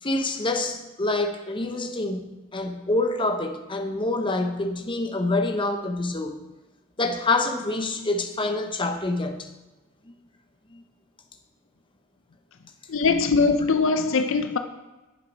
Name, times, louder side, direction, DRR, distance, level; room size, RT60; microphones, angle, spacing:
voice 1, 0.0-6.3 7.0-9.5 10.7-10.8, left 2 dB, 25° left, 0.9 m, -26 dB
voice 2, 12.9-14.6, left 4 dB, 65° left, 0.6 m, -21 dB
9.4 x 7.4 x 5.3 m
head